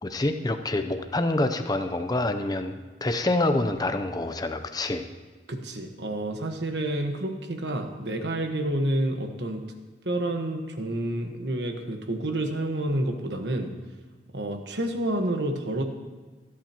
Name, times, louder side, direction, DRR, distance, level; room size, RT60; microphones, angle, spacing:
voice 1, 0.0-5.1, left 2 dB, 20° left, 7 dB, 0.6 m, -27 dB
voice 2, 5.5-9.6 10.0-13.7 14.3-15.8, right 1 dB, 70° right, 5 dB, 1.3 m, -29 dB
25.5 x 8.7 x 3.0 m, 1.3 s
head